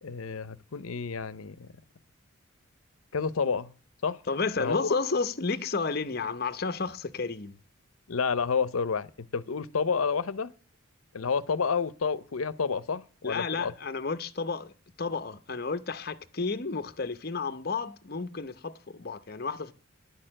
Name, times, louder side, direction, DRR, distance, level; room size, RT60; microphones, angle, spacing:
voice 1, 0.0-1.7 3.1-3.7 4.0-4.2 4.6-5.0 8.1-10.5 11.1-13.7, left 5 dB, 85° left, 0.6 m, -30 dB
voice 2, 4.3-7.6 13.2-14.7 15.0-19.7, left 4 dB, 45° left, 0.7 m, -31 dB
10.5 x 6.6 x 7.5 m
head